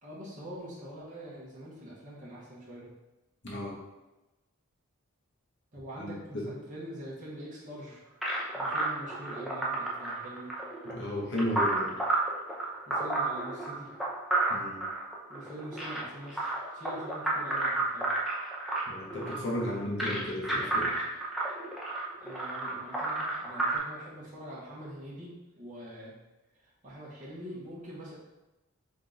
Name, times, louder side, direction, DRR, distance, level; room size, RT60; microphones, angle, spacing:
voice 1, 0.0-2.9 5.7-8.0 8.5-10.5 12.9-13.9 15.3-18.1 22.2-25.3 25.6-26.1 26.5-28.2, equal, 35° right, -7 dB, 1.0 m, -44 dB
voice 2, 3.4-3.8 6.0-6.5 10.8-11.9 14.5-14.8 18.9-21.0, left 1 dB, 50° left, -4 dB, 1.0 m, -34 dB
sound 1, 8.2-23.8, right 2 dB, ahead, 0.6 m, -31 dB
3.7 x 3.6 x 3.8 m, 1.0 s
head